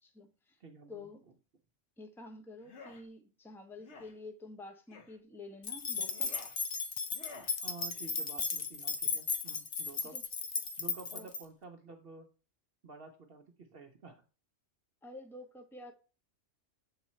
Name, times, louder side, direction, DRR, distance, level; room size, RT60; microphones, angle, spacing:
voice 1, 0.0-0.6 0.9-1.3 2.0-6.3 10.0-10.2 11.1-11.3 15.0-15.9, left 2 dB, ahead, 4 dB, 0.7 m, -49 dB
voice 2, 0.6-1.1 7.6-10.2 10.8-12.3 12.8-14.2, right 4 dB, 55° right, 4 dB, 0.9 m, -51 dB
sound 1, 2.6-3.0 3.8-4.1 4.9-5.2 6.0-6.6 7.1-7.6, left 3 dB, 65° left, 1.3 m, -51 dB
sound 2, 5.6-11.4, left 5 dB, 45° left, 0.7 m, -36 dB
7.1 x 3.7 x 4.2 m, 0.34 s
omnidirectional pair, 1.3 m